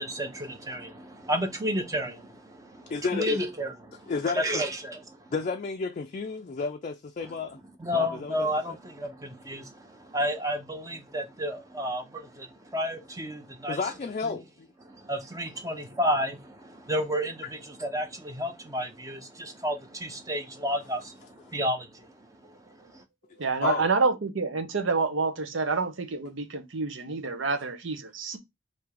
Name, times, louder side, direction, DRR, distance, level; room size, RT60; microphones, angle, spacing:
voice 1, 0.0-5.3 7.2-7.3 7.8-13.8 14.2-14.4 14.8-23.0, equal, 20° right, 0.6 m, -32 dB
voice 2, 2.9-3.4 4.1-4.6 5.3-7.6 7.9-8.8 13.7-14.7 23.6-23.9, left 4 dB, 40° left, 0.4 m, -32 dB
voice 3, 23.4-28.4, right 4 dB, 90° right, 0.8 m, -28 dB
3.5 x 2.7 x 4.7 m
head